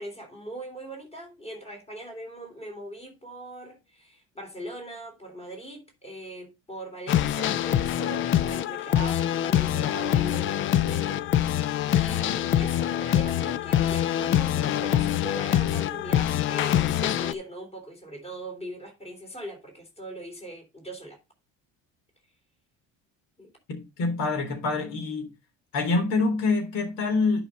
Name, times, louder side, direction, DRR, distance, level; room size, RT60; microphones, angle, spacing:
voice 1, 0.0-11.2 11.5-21.2 23.4-23.5, right 1 dB, 20° left, 3.4 m, -40 dB
sound 1, 7.1-17.3, left 11 dB, 40° left, 0.5 m, -25 dB
voice 2, 23.7-25.3 25.7-27.4, left 3 dB, 70° left, 3.6 m, -26 dB
10.5 x 5.2 x 4.1 m
cardioid pair, 165°, 33 cm